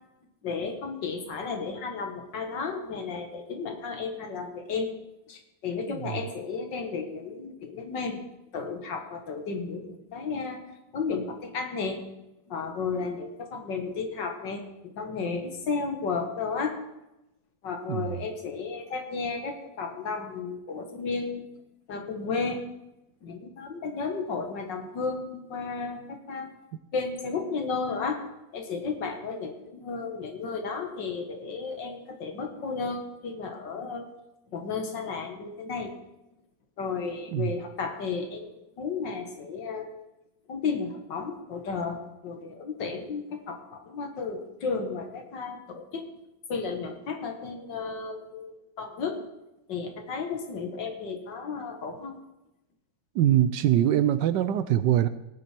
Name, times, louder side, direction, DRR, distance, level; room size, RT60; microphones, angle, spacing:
voice 1, 0.4-4.9 5.3-8.2 8.5-10.6 10.9-12.0 12.5-16.8 17.6-21.5 21.9-22.6 23.2-26.5 26.9-28.2 28.5-34.1 34.5-35.9 36.8-39.9 40.5-46.1 46.5-49.2 49.7-52.1, left 4 dB, 65° left, 5 dB, 2.2 m, -33 dB
voice 2, 5.9-6.2 17.9-18.2 37.3-37.5 53.1-55.1, right 11 dB, 75° right, 13 dB, 1.1 m, -23 dB
17.5 x 9.0 x 4.5 m, 0.93 s
omnidirectional pair, 2.1 m